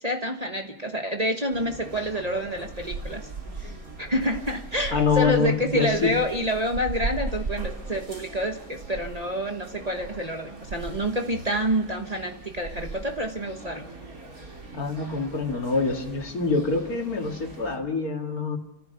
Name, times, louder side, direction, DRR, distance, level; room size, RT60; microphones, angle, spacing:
voice 1, 0.0-3.3 3.6-3.7 4.0-13.8, equal, 25° right, 3 dB, 1.3 m, -28 dB
sound 1, 1.5-17.8, right 3 dB, 65° right, 3.3 m, -38 dB
voice 2, 4.9-6.1 14.7-18.6, left 4 dB, 65° left, 2 dB, 2.7 m, -25 dB
30.0 x 14.5 x 6.7 m, 0.87 s
omnidirectional pair, 1.7 m